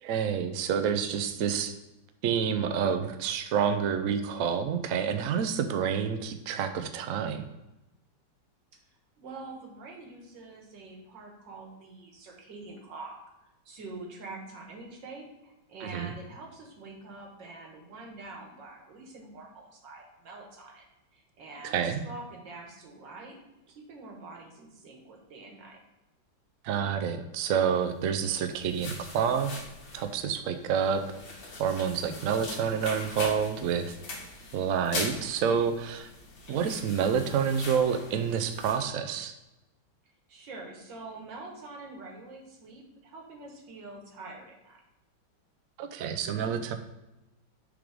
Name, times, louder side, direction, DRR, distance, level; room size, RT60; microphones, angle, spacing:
voice 1, 0.0-1.7 2.2-7.5 15.8-16.1 21.6-22.0 26.6-29.5 29.9-31.0 31.6-33.9 34.5-36.1 36.5-39.3 45.8-46.7, right 7 dB, 85° right, 8 dB, 0.7 m, -28 dB
voice 2, 9.2-13.2 13.4-20.8 21.1-23.4 23.7-25.8 40.3-44.8, right 3 dB, 70° right, 0 dB, 1.9 m, -45 dB
sound 1, 28.1-38.8, left 3 dB, 85° left, 2.1 m, -41 dB
6.9 x 3.6 x 4.9 m, 0.99 s
omnidirectional pair, 2.1 m